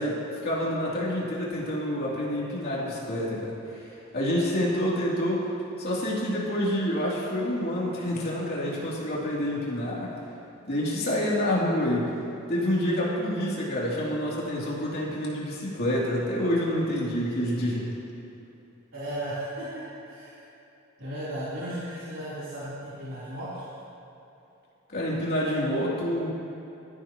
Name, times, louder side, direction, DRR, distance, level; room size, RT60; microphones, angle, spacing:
voice 1, 0.0-3.8 4.1-5.4 5.8-10.1 10.6-12.1 12.5-17.9 24.9-26.3, equal, 50° left, -6 dB, 3.1 m, -27 dB
voice 2, 18.9-19.8 20.1-20.4 21.0-23.7, right 1 dB, 65° right, -12 dB, 3.7 m, -35 dB
22.0 x 14.5 x 3.1 m, 2.9 s
head